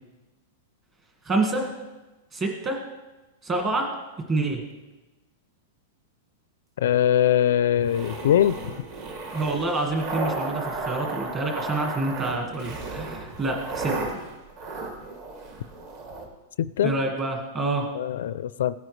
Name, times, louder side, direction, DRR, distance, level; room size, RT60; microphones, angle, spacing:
voice 1, 1.2-1.7 2.3-2.8 3.4-3.9 4.3-4.6 9.3-14.2 16.8-17.9, right 2 dB, 20° right, 2 dB, 1.7 m, -27 dB
voice 2, 6.8-8.7 16.6-16.9 17.9-18.8, left 10 dB, 70° left, 16 dB, 0.4 m, -22 dB
sound 1, 7.8-16.3, right 3 dB, 40° right, 1.9 m, -34 dB
17.0 x 9.2 x 3.2 m, 1.1 s
supercardioid pair, 175°, 0 cm